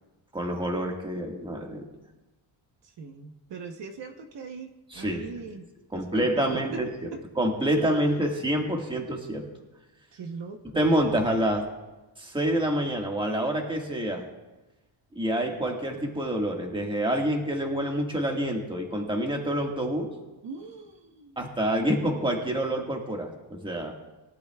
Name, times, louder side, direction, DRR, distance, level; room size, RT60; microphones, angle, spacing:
voice 1, 0.3-1.8 4.9-5.2 5.9-6.9 7.4-9.4 10.7-11.6 12.2-14.2 15.1-20.1 21.4-23.9, right 1 dB, 10° right, 1 dB, 1.6 m, -27 dB
voice 2, 2.8-5.6 5.9-6.8 7.1-7.2 7.8-8.3 10.1-10.9 20.4-21.4, right 4 dB, 60° right, 4 dB, 0.9 m, -40 dB
21.5 x 12.0 x 2.3 m, 1.1 s
wide cardioid pair, 165°, 49 cm